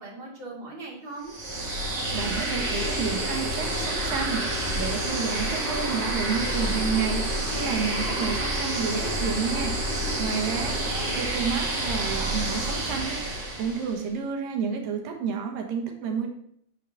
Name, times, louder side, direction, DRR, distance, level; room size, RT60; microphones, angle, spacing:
voice 1, 0.0-1.3 10.0-10.1 10.5-11.3, right 3 dB, 20° right, -4 dB, 2.1 m, -40 dB
sound 1, 1.2-14.0, right 1 dB, 45° right, 2.5 m, -29 dB
voice 2, 2.1-9.8 10.2-10.8 11.1-16.3, right 6 dB, 80° right, 3 dB, 2.9 m, -30 dB
sound 2, 2.5-11.3, left 5 dB, 70° left, 2.6 m, -39 dB
7.1 x 4.6 x 6.8 m, 0.69 s
omnidirectional pair, 3.9 m